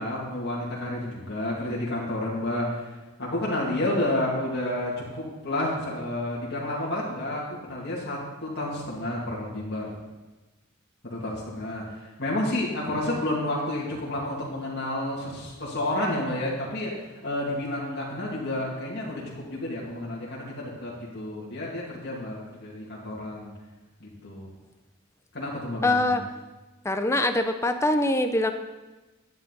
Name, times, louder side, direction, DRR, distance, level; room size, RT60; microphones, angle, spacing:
voice 1, 0.0-2.8 3.2-9.9 11.0-11.8 12.2-16.9 17.2-23.5 24.0-24.5 25.3-26.2, left 1 dB, 55° left, -5 dB, 2.5 m, -30 dB
voice 2, 25.8-26.2 26.8-28.5, left 2 dB, 15° left, 7 dB, 0.6 m, -23 dB
11.0 x 9.4 x 4.0 m, 1.2 s
head